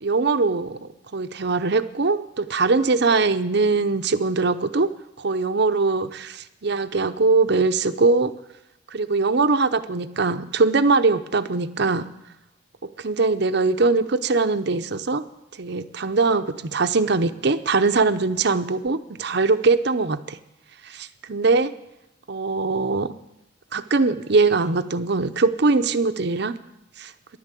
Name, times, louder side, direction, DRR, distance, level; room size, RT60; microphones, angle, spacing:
voice 1, 0.0-4.9 5.2-8.3 8.9-12.1 12.8-15.3 15.6-20.4 20.8-21.7 22.3-23.1 23.7-26.5 27.0-27.1, right 3 dB, 60° right, 10 dB, 0.7 m, -21 dB
13.5 x 11.5 x 8.3 m, 0.90 s
head